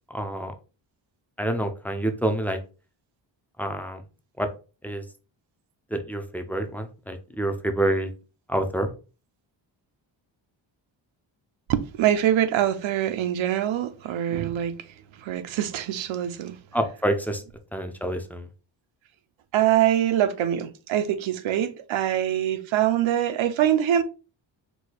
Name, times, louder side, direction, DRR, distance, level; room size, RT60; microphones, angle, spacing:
voice 1, 0.1-0.5 1.4-2.6 3.6-4.0 4.4-4.5 4.8-5.0 5.9-8.1 8.5-8.9 16.7-17.4 17.7-18.5, right 1 dB, 5° left, 0.3 m, -27 dB
voice 2, 11.7-14.9 15.2-16.9 19.5-24.0, right 11 dB, 80° right, 0.7 m, -24 dB
4.7 x 2.2 x 4.0 m
wide cardioid pair, 155°, 46 cm